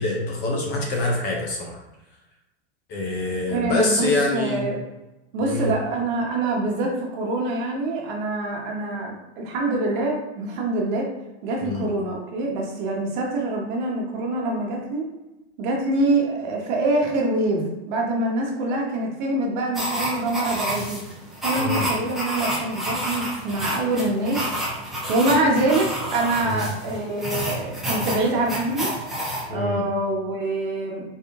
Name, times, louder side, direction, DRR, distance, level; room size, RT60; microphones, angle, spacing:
voice 1, 0.0-1.8 2.9-4.7 5.4-5.7 11.6-11.9 21.6-21.9 26.4-26.7 29.5-29.8, left 2 dB, 30° left, 0 dB, 0.8 m, -25 dB
voice 2, 3.5-4.8 5.3-11.1 11.4-15.1 15.6-21.0 21.4-24.5 25.1-28.9 29.5-31.0, right 2 dB, 45° right, -1 dB, 1.2 m, -25 dB
sound 1, 19.7-29.4, right 1 dB, ahead, 0.9 m, -29 dB
4.1 x 3.6 x 3.6 m, 1.0 s
supercardioid pair, 160°, 33 cm